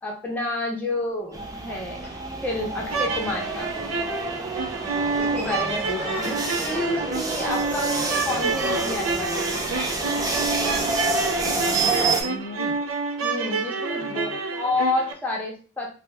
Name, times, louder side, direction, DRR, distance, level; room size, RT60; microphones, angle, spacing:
voice 1, 0.0-2.0 2.4-3.7 5.2-9.6 13.2-15.9, left 2 dB, 10° left, -2 dB, 0.7 m, -29 dB
sound 1, 0.8-0.9 1.3-1.4 2.0-2.3 2.7-2.8 4.3-4.4 5.0-7.8 8.3-9.7 9.9-10.4 11.7-12.3, right 8 dB, 50° right, 1.2 m, -32 dB
sound 2, 1.3-12.2, right 2 dB, 15° right, 0.4 m, -29 dB
sound 3, 2.8-15.1, right 4 dB, 80° right, 0.5 m, -28 dB
voice 2, 5.1-6.4 8.4-8.7 11.2-12.8 13.9-14.4, left 4 dB, 75° left, 3 dB, 0.4 m, -39 dB
2.9 x 2.1 x 3.2 m, 0.38 s
head